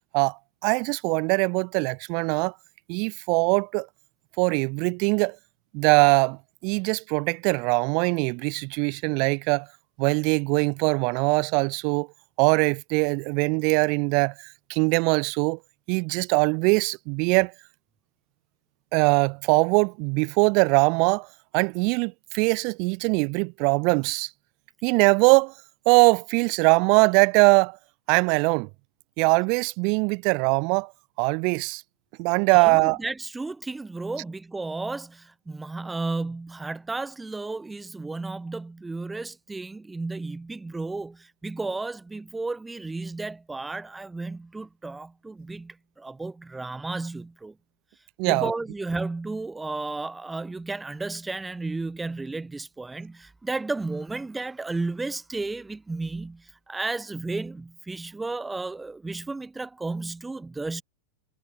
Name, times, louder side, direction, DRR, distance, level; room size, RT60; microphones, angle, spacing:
voice 1, 0.1-2.5 2.9-3.9 4.4-5.4 5.7-9.7 10.0-12.1 12.4-15.6 15.9-17.5 18.9-21.3 21.5-24.3 24.8-25.5 25.9-27.8 28.1-28.7 29.2-30.9 31.2-31.8 32.2-33.0 48.2-48.5, right 35 dB, 45° right, 0.7 m, -22 dB
voice 2, 32.5-47.5 48.3-60.8, right 3 dB, 10° right, 1.3 m, -33 dB
figure-of-eight pair, 90°, 0 cm